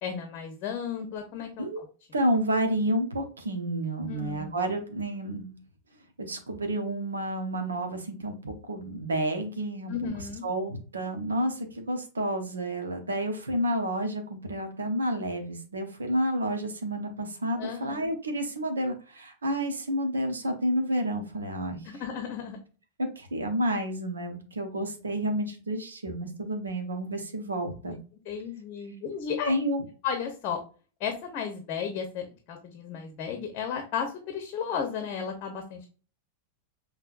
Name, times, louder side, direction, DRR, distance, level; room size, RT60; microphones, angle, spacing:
voice 1, 0.0-1.9 4.1-4.5 9.9-10.4 17.6-18.1 21.8-22.6 28.2-29.5 30.0-30.6 31.0-35.9, left 7 dB, 40° left, 5 dB, 0.8 m, -34 dB
voice 2, 2.1-5.6 6.2-9.9 10.4-21.8 23.0-28.0 29.5-29.8, right 1 dB, 75° right, 5 dB, 0.9 m, -30 dB
5.6 x 3.1 x 2.5 m, 0.37 s
figure-of-eight pair, 90°, 0 cm